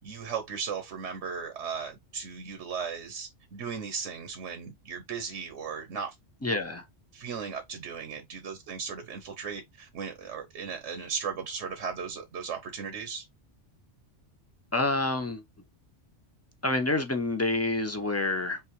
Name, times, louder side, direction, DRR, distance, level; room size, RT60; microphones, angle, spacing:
voice 1, 0.0-6.1 7.1-13.2, right 6 dB, 75° right, 1.2 m, -36 dB
voice 2, 6.4-6.8 14.7-15.4 16.6-18.6, left 2 dB, 15° left, 0.6 m, -28 dB
5.7 x 2.5 x 3.2 m
omnidirectional pair, 1.2 m